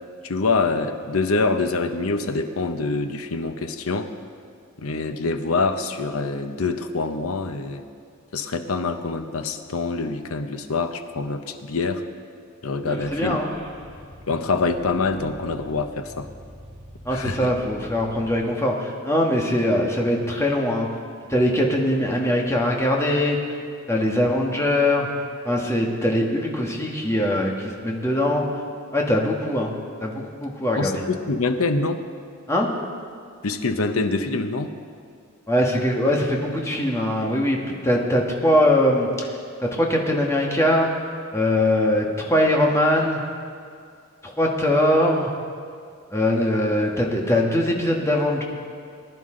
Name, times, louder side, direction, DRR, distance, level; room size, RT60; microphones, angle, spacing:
voice 1, 0.2-4.1 4.8-7.9 8.3-12.0 12.6-13.4 14.3-16.3 17.1-17.5 30.8-32.0 33.4-34.7, left 3 dB, 80° left, 8 dB, 0.9 m, -25 dB
voice 2, 12.9-13.5 17.0-20.9 21.3-23.4 23.9-25.1 25.4-28.4 28.9-29.7 30.0-31.0 32.5-32.7 35.5-39.3 39.7-40.9 41.3-43.2 44.2-45.3 46.1-48.4, left 1 dB, 15° left, -1 dB, 1.5 m, -21 dB
Car / Engine starting, 12.9-18.3, equal, 35° right, 2.2 m, -44 dB
20.5 x 10.5 x 3.8 m, 2.3 s
head